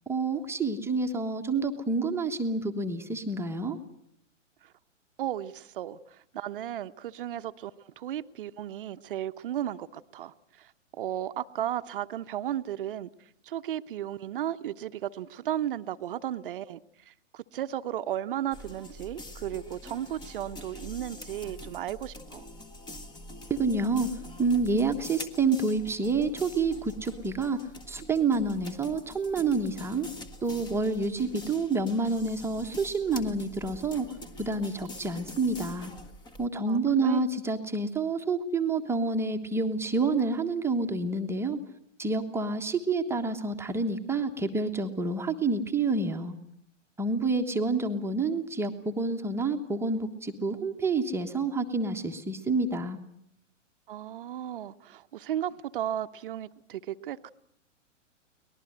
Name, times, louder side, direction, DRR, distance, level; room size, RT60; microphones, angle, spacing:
voice 1, 0.1-3.8 23.5-24.1 24.4-27.6 27.9-30.1 30.4-34.1 34.4-35.9 36.4-41.6 42.0-46.4 47.0-53.0, right 3 dB, 5° right, 4 dB, 1.3 m, -28 dB
voice 2, 5.2-7.7 8.0-13.1 13.4-16.8 17.1-22.5 36.7-37.2 53.9-57.3, right 11 dB, 45° right, 12 dB, 1.0 m, -35 dB
sound 1, 18.5-36.5, left 1 dB, 10° left, 1.3 m, -45 dB
23.5 x 19.5 x 8.0 m, 0.71 s
figure-of-eight pair, 115°, 38 cm